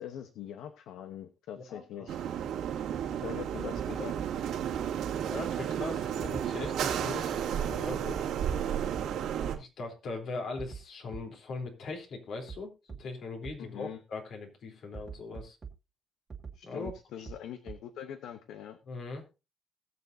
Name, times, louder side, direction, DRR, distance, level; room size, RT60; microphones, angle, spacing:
voice 1, 0.0-2.2 3.2-4.2 13.6-14.0 16.5-18.8, left 10 dB, 85° left, 10 dB, 0.9 m, -43 dB
voice 2, 1.6-2.1 5.2-8.3 9.5-15.6 16.6-17.2 18.9-19.2, left 3 dB, 70° left, 2 dB, 3.4 m, -40 dB
sound 1, 2.1-9.6, right 9 dB, 85° right, 2.4 m, -32 dB
sound 2, 3.7-3.8 4.2-4.3 4.7-4.8 6.2-7.0 7.6-7.8 8.1-8.2 8.5-8.6 8.9-9.0 10.6-10.8 11.1-11.2 12.5-12.6 12.9-13.0 13.4-13.5 14.9-15.7 16.3-16.5 16.8-16.9 17.2-17.3 17.7-17.8, right 6 dB, 35° right, 1.9 m, -42 dB
20.5 x 6.9 x 2.7 m, 0.28 s
cardioid pair, 90°, 0 cm